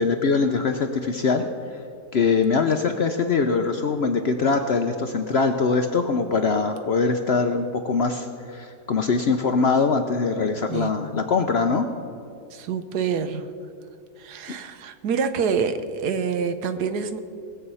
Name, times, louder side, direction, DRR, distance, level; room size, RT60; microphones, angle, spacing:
voice 1, 0.0-1.5 2.1-11.9, left 4 dB, 60° left, 6 dB, 0.7 m, -22 dB
voice 2, 12.5-13.5 14.2-17.2, right 6 dB, 80° right, 9 dB, 1.3 m, -26 dB
19.5 x 7.8 x 5.5 m, 2.5 s
omnidirectional pair, 1.7 m